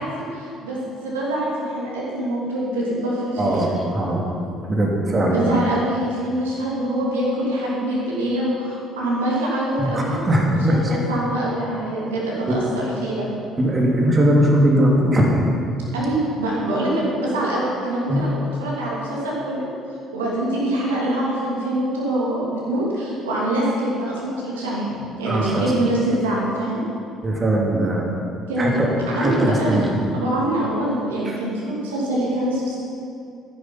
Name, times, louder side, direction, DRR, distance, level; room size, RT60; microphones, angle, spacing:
voice 1, 0.0-3.7 5.3-10.2 10.5-13.4 15.9-19.6 20.1-24.9 25.2-26.8 28.5-28.7 29.1-29.9 30.1-32.9, right 1 dB, 75° right, -5 dB, 2.8 m, -24 dB
voice 2, 3.4-4.3 4.7-5.4 9.8-11.0 12.5-12.6 13.6-15.3 18.1-18.3 25.2-25.7 27.2-28.1 28.6-29.9 31.2-31.4, right 1 dB, 30° right, -2 dB, 2.8 m, -20 dB
13.5 x 10.0 x 5.8 m, 2.5 s
figure-of-eight pair, 50°, 0 cm